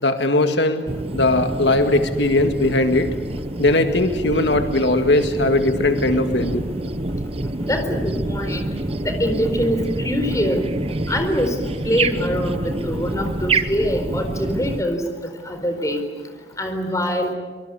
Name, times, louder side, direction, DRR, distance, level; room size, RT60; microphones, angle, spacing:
voice 1, 0.0-0.8 1.1-3.1 3.6-6.6, left 2 dB, 85° left, 7 dB, 1.9 m, -19 dB
sound 1, 0.9-14.8, right 2 dB, 35° right, 1.1 m, -27 dB
voice 2, 7.6-8.7 9.0-9.8 10.0-10.7 11.1-11.6 11.8-15.0 15.5-16.0 16.6-17.3, equal, 20° left, 6 dB, 4.3 m, -23 dB
25.5 x 23.5 x 8.2 m, 1.4 s
head